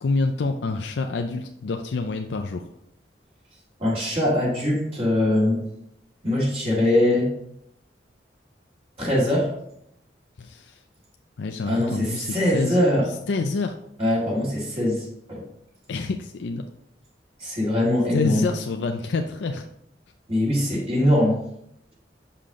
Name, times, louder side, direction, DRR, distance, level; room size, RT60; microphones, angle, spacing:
voice 1, 0.0-2.7 10.4-10.8 11.4-12.8 13.1-13.7 15.9-16.7 18.1-19.7, left 3 dB, 80° left, 5 dB, 0.5 m, -27 dB
voice 2, 3.8-5.6 6.2-7.3 9.0-9.5 11.6-13.1 14.0-15.4 17.4-18.4 20.3-21.4, left 1 dB, 35° right, -5 dB, 2.0 m, -22 dB
6.7 x 5.8 x 3.6 m, 0.75 s
head